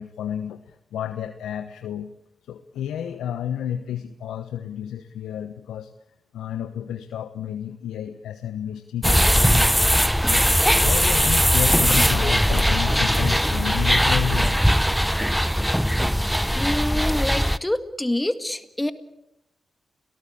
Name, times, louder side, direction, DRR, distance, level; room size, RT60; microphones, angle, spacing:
voice 1, 0.0-2.1 2.5-5.9 6.3-9.7 10.2-14.6, left 9 dB, 90° left, 9 dB, 1.0 m, -31 dB
sound 1, 9.0-17.6, equal, ahead, 1.0 m, -20 dB
voice 2, 16.5-18.9, left 1 dB, 15° left, 10 dB, 1.9 m, -26 dB
29.5 x 19.0 x 8.7 m, 0.85 s
supercardioid pair, 40°, 0 cm